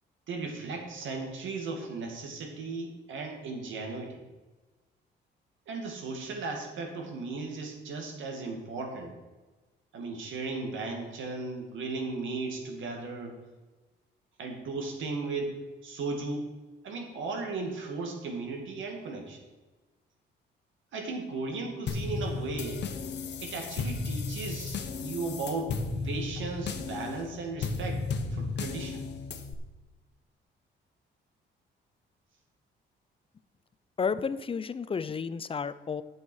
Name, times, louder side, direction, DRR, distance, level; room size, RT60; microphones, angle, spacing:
voice 1, 0.3-4.2 5.7-9.1 9.9-13.4 14.4-16.5 16.8-19.4 20.9-22.9 23.4-25.7 26.0-28.0 28.3-29.0, right 3 dB, 75° right, 2 dB, 2.3 m, -36 dB
sound 1, 21.9-29.5, left 4 dB, 60° left, 1.2 m, -34 dB
voice 2, 34.0-36.0, left 5 dB, 25° left, 15 dB, 0.5 m, -31 dB
9.2 x 7.3 x 6.4 m, 1.2 s
cardioid pair, 90°, 20 cm